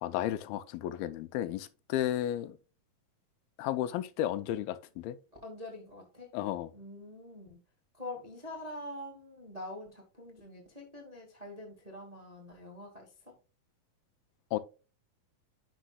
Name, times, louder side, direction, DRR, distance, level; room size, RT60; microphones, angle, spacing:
voice 1, 0.0-2.6 3.6-5.2 6.3-6.7 14.5-14.6, left 12 dB, 85° left, 2.5 m, -33 dB
voice 2, 5.4-6.3 6.7-7.6 7.9-13.3, left 1 dB, 25° right, 0.8 m, -45 dB
10.5 x 5.6 x 2.2 m
omnidirectional pair, 4.3 m